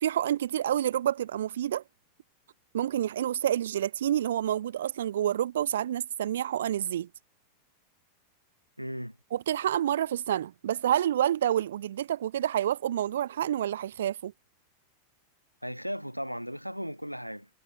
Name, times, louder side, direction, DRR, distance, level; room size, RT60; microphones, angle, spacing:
voice 1, 0.0-1.8 2.7-7.1 9.3-14.3, right 11 dB, 60° right, 1.3 m, -28 dB
voice 2, 8.8-9.2 15.6-17.5, equal, 90° right, 2.9 m, -36 dB
figure-of-eight pair, 90°, 0 cm